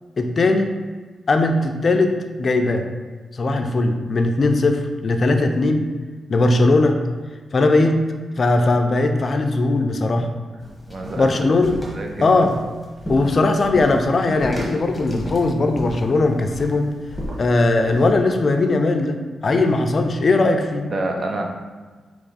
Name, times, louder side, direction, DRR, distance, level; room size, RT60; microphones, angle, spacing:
voice 1, 0.2-0.7 1.3-2.9 3.3-5.9 6.3-7.0 7.5-8.0 8.4-10.3 11.2-11.8 12.2-12.5 13.1-16.9 17.4-19.2 19.4-20.9, left 2 dB, 45° left, 5 dB, 0.4 m, -19 dB
sound 1, 10.6-18.1, equal, ahead, 1.2 m, -34 dB
voice 2, 10.9-11.4 11.9-12.4 20.8-21.5, right 2 dB, 50° right, 2 dB, 0.6 m, -27 dB
4.3 x 3.0 x 4.0 m, 1.4 s
cardioid pair, 95°, 0 cm